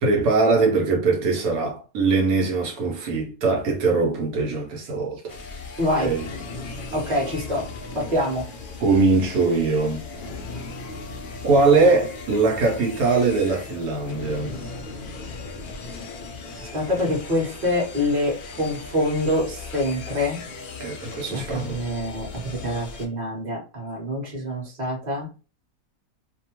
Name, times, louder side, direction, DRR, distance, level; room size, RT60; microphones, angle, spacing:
voice 1, 0.0-5.3 6.0-6.3 8.8-10.0 11.4-14.6 20.8-21.8, right 3 dB, 80° right, 1.2 m, -21 dB
sound 1, 5.3-23.1, left 3 dB, 75° left, 0.4 m, -37 dB
voice 2, 5.8-6.1 6.9-7.7 7.9-8.5 16.7-20.4 21.3-25.3, left 1 dB, 35° right, 1.1 m, -25 dB
2.8 x 2.2 x 2.9 m
omnidirectional pair, 1.6 m